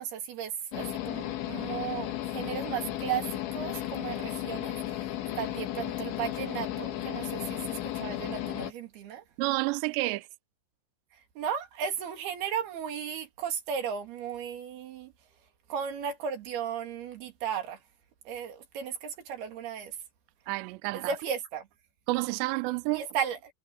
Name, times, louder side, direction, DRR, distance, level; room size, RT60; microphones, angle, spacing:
voice 1, 0.0-3.3 3.5-5.1 5.4-9.2 11.4-15.1 15.7-17.8 18.3-20.0 20.9-21.7 22.9-23.4, right 8 dB, 55° right, 4.2 m, -35 dB
sound 1, 0.7-8.7, left 13 dB, 70° left, 4.0 m, -34 dB
voice 2, 9.4-10.3 20.5-21.1 22.1-23.1, right 22 dB, 90° right, 2.5 m, -29 dB
omnidirectional pair, 5.8 m